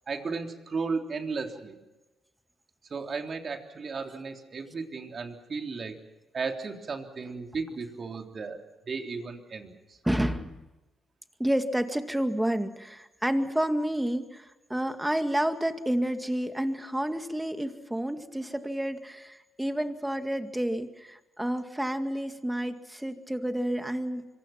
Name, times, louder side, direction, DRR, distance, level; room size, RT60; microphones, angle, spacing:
voice 1, 0.1-1.8 2.9-6.0 6.3-10.0, right 4 dB, 45° right, 4 dB, 3.4 m, -35 dB
voice 2, 10.0-10.6 11.4-24.3, right 1 dB, 5° right, 8 dB, 2.1 m, -30 dB
25.5 x 23.5 x 5.9 m, 1.1 s
cardioid pair, 90°, 0 cm